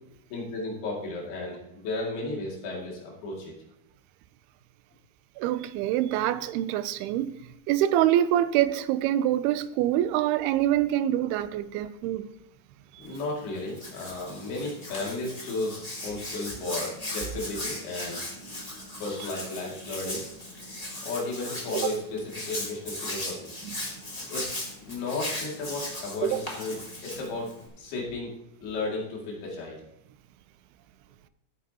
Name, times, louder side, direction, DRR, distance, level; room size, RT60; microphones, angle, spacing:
voice 1, 0.3-3.5 13.0-18.3 19.0-20.2 21.0-23.5 24.3-27.5 27.8-28.3 28.6-29.8, left 2 dB, 80° left, 4.4 m, -34 dB
voice 2, 5.4-7.4 7.7-12.3 21.8-21.9 23.6-23.8 26.2-26.4, right 12 dB, 90° right, 2.6 m, -25 dB
Hands, 13.0-27.7, left 1 dB, 15° left, 1.5 m, -38 dB
14.5 x 9.2 x 2.9 m
omnidirectional pair, 4.5 m